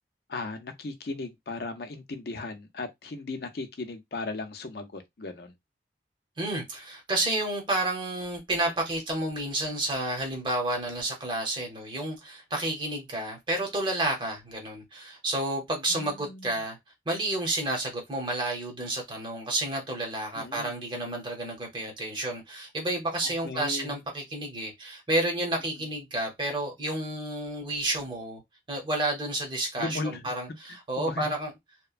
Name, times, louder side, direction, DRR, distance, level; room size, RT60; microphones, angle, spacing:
voice 1, 0.3-5.5 15.9-16.6 20.3-20.8 23.2-24.0 29.8-30.3 31.0-31.3, left 3 dB, 60° left, 0.5 m, -36 dB
voice 2, 6.4-16.8 17.1-28.4 28.7-31.5, right 1 dB, 25° right, 0.8 m, -30 dB
2.8 x 2.1 x 2.4 m
head